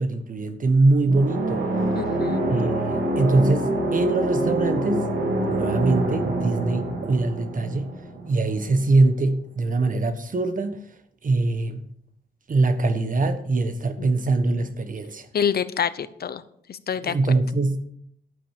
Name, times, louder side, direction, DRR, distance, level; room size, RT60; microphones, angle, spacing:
voice 1, 0.0-1.6 2.5-5.1 5.5-7.9 8.2-10.8 11.2-11.8 12.5-15.3 17.0-17.9, right 2 dB, 50° right, 1.4 m, -23 dB
sound 1, 1.1-8.7, right 1 dB, 85° right, 3.2 m, -26 dB
voice 2, 1.9-2.4 14.0-14.1 15.3-16.4 16.7-17.2, left 7 dB, 60° left, 0.8 m, -27 dB
11.5 x 8.8 x 5.1 m
cardioid pair, 75°, 18 cm